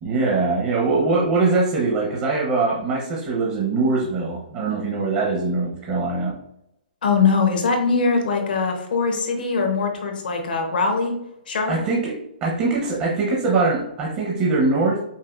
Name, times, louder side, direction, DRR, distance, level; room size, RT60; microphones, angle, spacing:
voice 1, 0.0-6.3 11.7-15.0, right 3 dB, 30° right, -4 dB, 1.0 m, -22 dB
voice 2, 7.0-11.1 11.5-11.8, left 4 dB, 70° left, 3 dB, 1.0 m, -21 dB
5.6 x 2.6 x 2.5 m, 0.80 s
hypercardioid pair, 140°, 5 cm